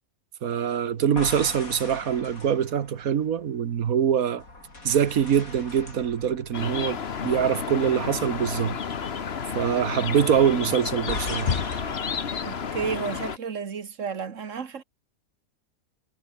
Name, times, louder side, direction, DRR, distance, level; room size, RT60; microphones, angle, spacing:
voice 1, 0.4-4.4 4.8-8.8 9.5-11.5, right 8 dB, 85° right, 1.6 m, -24 dB
sound 1, 1.0-3.9 4.4-7.8 8.1-8.3 11.1-12.7, left 2 dB, 85° left, 6.1 m, -39 dB
sound 2, 6.5-13.4, left 6 dB, 50° left, 1.4 m, -31 dB
voice 2, 12.4-14.8, right 6 dB, 65° right, 1.9 m, -32 dB
omnidirectional pair, 1.5 m